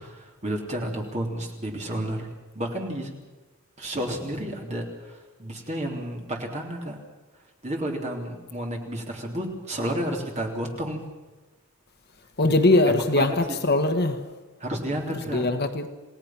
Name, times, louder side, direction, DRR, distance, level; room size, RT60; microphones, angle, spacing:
voice 1, 0.0-2.3 2.5-3.1 3.8-7.0 7.6-11.0 13.1-13.6 14.6-15.5, right 1 dB, 30° right, 3.3 m, -31 dB
voice 2, 12.4-14.4 15.1-15.9, left 2 dB, 50° left, 1.3 m, -22 dB
28.5 x 18.0 x 5.9 m
head